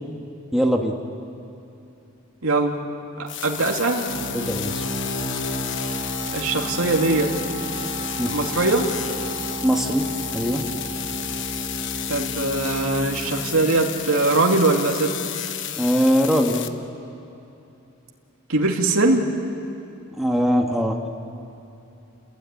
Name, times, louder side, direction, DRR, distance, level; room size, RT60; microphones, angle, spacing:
voice 1, 0.5-1.0 4.3-4.8 8.2-8.3 9.6-10.1 10.3-10.6 15.8-16.6 20.2-21.0, equal, ahead, 1 dB, 1.5 m, -21 dB
voice 2, 2.4-2.8 3.2-4.1 6.3-7.4 8.3-8.9 12.1-15.1 18.5-19.2, right 2 dB, 75° right, 1 dB, 2.5 m, -21 dB
sound 1, 3.3-16.7, left 11 dB, 55° left, 1.1 m, -32 dB
sound 2, 3.6-15.0, right 1 dB, 80° left, 5.2 m, -33 dB
29.5 x 20.0 x 9.8 m, 2.8 s
head